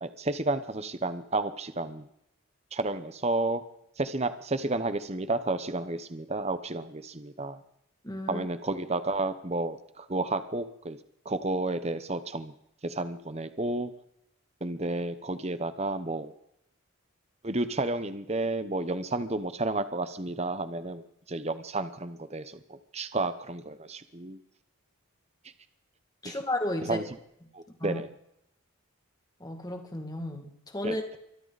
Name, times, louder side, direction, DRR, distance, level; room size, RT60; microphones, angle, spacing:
voice 1, 0.0-2.1 2.7-3.6 4.0-7.6 8.3-11.0 11.2-12.5 12.8-13.9 14.6-16.3 17.4-21.0 21.3-24.4 26.2-26.4 26.9-27.0 27.5-28.1 30.8-31.0, right 2 dB, 30° right, 11 dB, 0.9 m, -31 dB
voice 2, 8.0-8.5 26.2-27.0 27.7-28.0 29.4-31.2, left 1 dB, 15° left, 4 dB, 2.2 m, -33 dB
24.0 x 13.0 x 4.1 m, 0.77 s
head